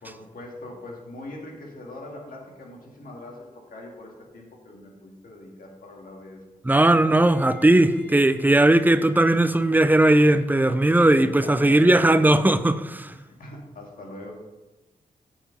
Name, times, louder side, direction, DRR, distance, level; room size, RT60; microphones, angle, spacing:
voice 1, 0.0-6.4 11.1-12.2 13.0-14.3, left 1 dB, 75° left, 1.9 m, -42 dB
voice 2, 6.6-13.1, right 1 dB, 10° right, 0.5 m, -18 dB
Bowed string instrument, 7.2-12.1, left 5 dB, 15° left, 2.8 m, -46 dB
7.8 x 4.9 x 5.1 m
cardioid pair, 60°, 15 cm